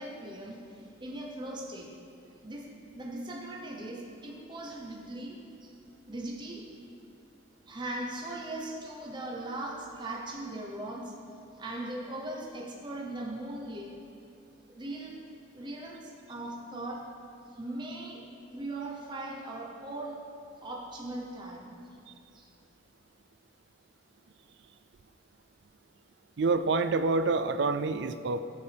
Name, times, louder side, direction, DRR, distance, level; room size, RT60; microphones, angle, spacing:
voice 1, 0.0-1.9 2.4-2.7 2.9-5.7 6.1-6.7 7.7-11.1 11.5-14.0 14.7-15.2 15.5-17.1 17.5-18.2 18.5-20.3 20.6-21.7 22.3-22.5, right 1 dB, 25° right, -2 dB, 0.9 m, -39 dB
voice 2, 26.4-28.4, right 3 dB, 60° right, 11 dB, 0.4 m, -27 dB
14.0 x 8.2 x 3.5 m, 2.6 s
head